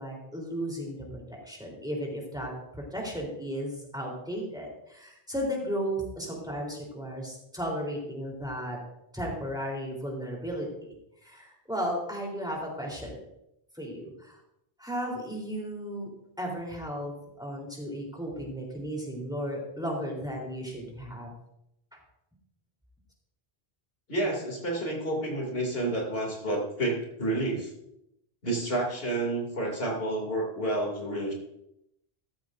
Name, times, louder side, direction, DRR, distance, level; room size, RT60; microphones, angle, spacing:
voice 1, 0.0-8.8 9.1-10.9 11.2-13.2 13.7-14.4 14.8-16.1 16.4-21.3, equal, 5° right, -1 dB, 3.5 m, -35 dB
voice 2, 24.1-27.7 28.4-31.3, right 1 dB, 70° left, 0 dB, 2.9 m, -30 dB
14.0 x 14.0 x 2.6 m, 0.81 s
omnidirectional pair, 1.0 m